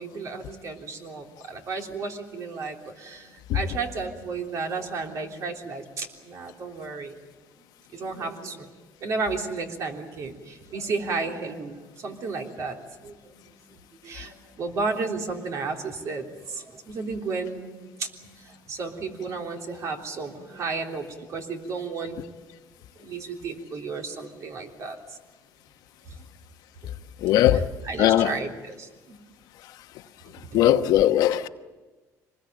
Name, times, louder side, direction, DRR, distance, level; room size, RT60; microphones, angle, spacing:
voice 1, 0.0-7.2 7.9-8.7 9.0-13.5 14.0-17.6 18.0-22.2 23.0-25.2 27.5-29.2 30.5-30.6, right 4 dB, 50° right, 3.4 m, -33 dB
voice 2, 27.2-27.6 28.0-28.3 30.5-31.5, left 12 dB, 75° left, 1.1 m, -19 dB
25.5 x 20.5 x 9.1 m
cardioid pair, 135°, 7 cm